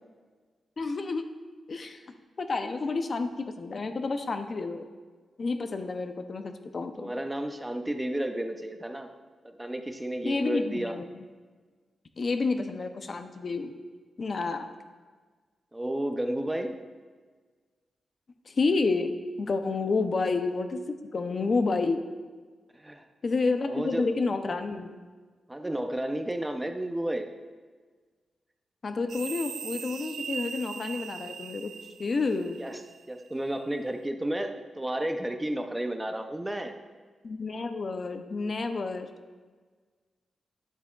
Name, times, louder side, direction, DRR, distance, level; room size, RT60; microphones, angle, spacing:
voice 1, 0.8-1.3 1.7-2.0 2.4-4.9 5.4-7.1 10.2-11.2 12.2-13.7 14.2-14.7 18.5-19.1 19.4-20.8 21.1-22.0 23.2-24.9 28.8-31.7 32.0-32.6 37.2-39.1, left 3 dB, 45° left, 8 dB, 0.5 m, -29 dB
voice 2, 7.0-9.1 9.5-11.0 15.7-16.7 22.7-23.0 23.7-24.1 25.5-27.3 32.6-32.8 33.1-36.8, right 1 dB, 10° right, 6 dB, 0.5 m, -32 dB
sound 1, 29.1-33.3, right 7 dB, 85° right, 0.4 m, -40 dB
9.7 x 8.1 x 2.3 m, 1.5 s
wide cardioid pair, 120°, 0 cm